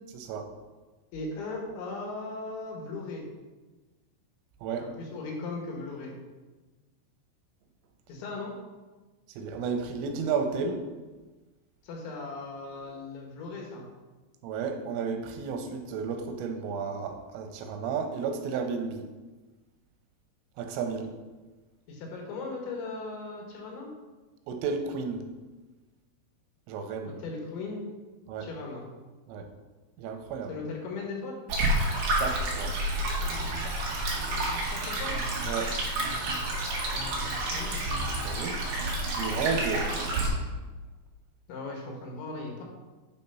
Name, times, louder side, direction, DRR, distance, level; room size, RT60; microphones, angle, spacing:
voice 1, 0.2-0.5 4.6-4.9 9.4-10.9 14.4-19.1 20.6-21.1 24.5-25.2 26.7-27.2 28.3-28.5 29.3-29.5 30.0-30.5 32.2-32.8 35.5-35.8 38.2-38.6 39.2-40.3, right 5 dB, 90° right, 5 dB, 3.4 m, -32 dB
voice 2, 1.1-3.2 4.8-6.1 8.1-8.5 11.8-13.9 21.9-23.9 27.0-27.8 28.4-28.9 30.5-31.4 34.7-35.2 37.2-37.8 41.5-42.6, left 3 dB, 75° left, 0 dB, 3.7 m, -38 dB
Stream, 31.5-40.3, right 1 dB, 55° right, 2.7 m, -29 dB
sound 1, 33.2-40.6, right 1 dB, 70° right, 1.3 m, -46 dB
9.0 x 4.6 x 5.5 m, 1.2 s
omnidirectional pair, 5.6 m